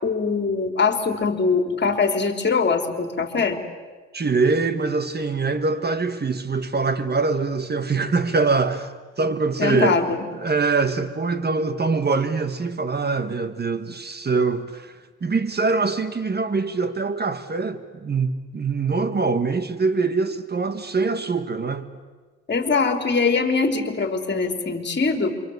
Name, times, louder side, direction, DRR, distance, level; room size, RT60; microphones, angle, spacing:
voice 1, 0.0-3.6 9.6-10.2 22.5-25.4, left 4 dB, 35° left, 3.9 m, -22 dB
voice 2, 4.1-10.0 10.4-21.9, right 4 dB, 35° right, 1.7 m, -23 dB
27.5 x 25.0 x 8.2 m
cardioid pair, 90°, 30 cm